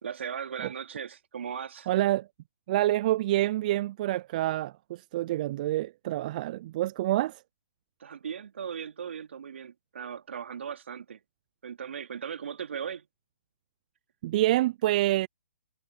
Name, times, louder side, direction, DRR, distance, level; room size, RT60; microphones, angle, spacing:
voice 1, 0.0-1.9 8.0-11.2 11.6-13.1, right 7 dB, 65° right, 3.3 m, -38 dB
voice 2, 1.9-2.3 2.7-7.4 14.2-15.3, right 15 dB, 40° right, 0.4 m, -27 dB
hypercardioid pair, 140°, 7 cm